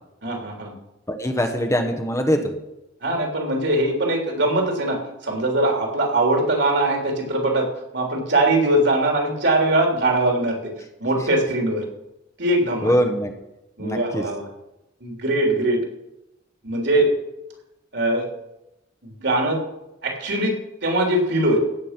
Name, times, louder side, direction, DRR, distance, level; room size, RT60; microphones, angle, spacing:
voice 1, 0.2-0.7 3.0-7.7 7.9-10.7 11.0-11.9 12.4-13.0 13.8-14.5 15.0-15.8 16.6-17.1 17.9-18.3 19.0-19.6 20.0-20.6 20.8-21.6, right 1 dB, 65° right, 1 dB, 3.3 m, -21 dB
voice 2, 1.1-2.4 12.8-13.3 13.8-14.2, equal, 15° left, 5 dB, 1.1 m, -22 dB
16.0 x 7.4 x 6.0 m, 0.92 s
head